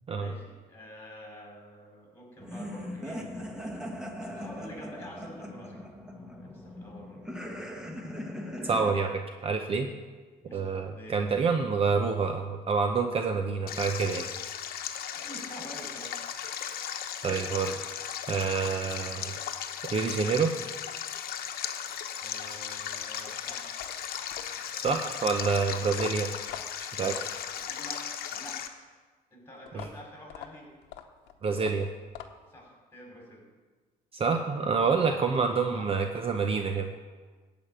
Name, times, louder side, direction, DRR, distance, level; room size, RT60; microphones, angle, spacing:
voice 1, 0.2-3.3 4.2-5.8 6.4-7.2 10.5-10.6 10.9-11.1 15.1-16.1 22.2-23.7 27.5-28.7 29.3-30.7 32.5-33.4 35.1-35.2 35.7-35.9, equal, 15° left, -1 dB, 4.8 m, -47 dB
sound 1, 2.4-8.9, left 1 dB, 5° right, 1.3 m, -39 dB
voice 2, 8.6-9.9 10.5-14.2 17.2-17.8 18.3-19.4 19.9-20.5 24.7-26.3 26.8-27.2 29.7-29.9 31.4-31.9 34.1-36.9, right 5 dB, 35° right, 5 dB, 0.8 m, -27 dB
Stream, 13.7-28.7, left 9 dB, 65° left, 1.0 m, -36 dB
sound 2, 23.7-28.0 29.7-32.6, left 10 dB, 90° left, 0.9 m, -46 dB
14.0 x 5.2 x 9.0 m, 1.4 s
cardioid pair, 110°, 17 cm